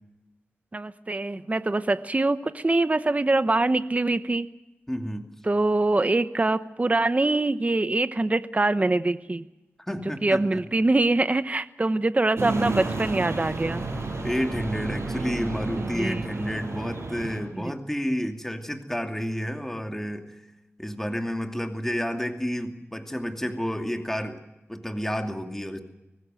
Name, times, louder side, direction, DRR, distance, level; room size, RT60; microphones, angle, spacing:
voice 1, 0.7-4.5 5.4-9.4 10.2-13.9 15.9-16.3 17.5-17.7, right 2 dB, 30° right, 12 dB, 0.9 m, -24 dB
voice 2, 4.9-5.3 9.8-10.6 14.2-20.3 20.8-24.4 24.7-25.8, equal, 10° left, 4 dB, 2.6 m, -30 dB
sound 1, 12.4-17.4, right 2 dB, 70° right, 7.4 m, -31 dB
24.0 x 19.5 x 7.7 m, 0.97 s
wide cardioid pair, 75°, 5 cm